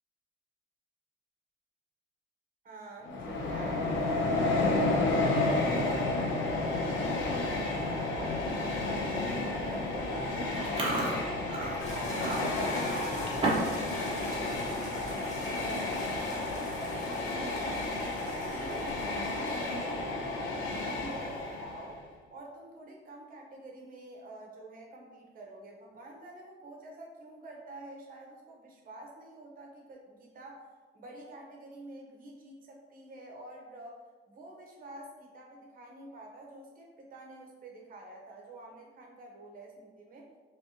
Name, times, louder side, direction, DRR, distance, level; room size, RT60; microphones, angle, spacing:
voice 1, 2.6-4.5 4.8-9.1 9.4-22.0 22.3-30.7 30.9-34.0 34.3-40.3, right 2 dB, 50° right, 0 dB, 1.0 m, -48 dB
Train, 3.0-21.9, left 2 dB, 85° left, 0.7 m, -31 dB
Chewing mastication, 10.5-13.8 14.1-14.4 14.9-15.1 15.8-15.9 16.1-16.5 16.9-17.0 18.5-19.0, right 2 dB, 30° right, 1.0 m, -34 dB
sound 1, 11.8-19.9, left 1 dB, 35° left, 1.1 m, -43 dB
4.4 x 3.1 x 2.8 m, 1.4 s
cardioid pair, 130°, 19 cm